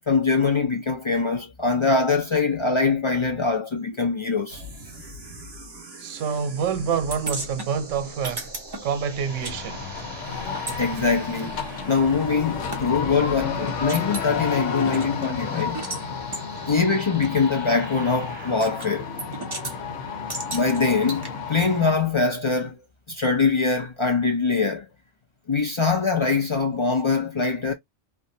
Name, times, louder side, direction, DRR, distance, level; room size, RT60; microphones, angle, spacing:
voice 1, 0.0-4.6 10.8-11.6 11.9-15.8 16.7-19.1 20.5-22.8 23.1-24.9 25.5-27.7, left 4 dB, 55° left, 0.3 m, -23 dB
sound 1, 4.5-21.3, right 1 dB, 55° right, 1.6 m, -43 dB
voice 2, 6.0-8.5 8.8-9.9, right 7 dB, 90° right, 1.0 m, -27 dB
sound 2, 7.1-9.6 9.8-12.8 13.3-13.4 13.7-14.3 14.8-16.0 16.3-16.5 17.2-17.3 18.6-18.9 19.2-19.8 20.3-21.3, right 2 dB, 25° right, 0.6 m, -36 dB
sound 3, 9.2-22.1, left 5 dB, 80° left, 1.1 m, -32 dB
3.2 x 2.2 x 2.6 m
omnidirectional pair, 1.2 m